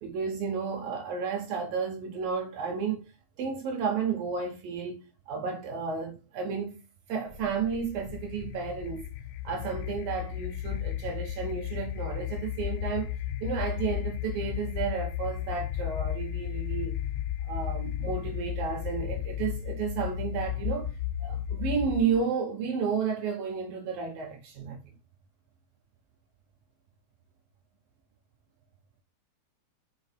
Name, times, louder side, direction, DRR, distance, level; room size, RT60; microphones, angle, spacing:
voice 1, 0.0-3.0 3.4-5.0 5.3-6.8 7.1-9.0 9.4-17.0 17.5-24.8, right 6 dB, 70° right, 2.3 m, -32 dB
sound 1, 7.3-22.2, left 11 dB, 90° left, 2.5 m, -34 dB
6.4 x 5.9 x 4.5 m
omnidirectional pair, 5.8 m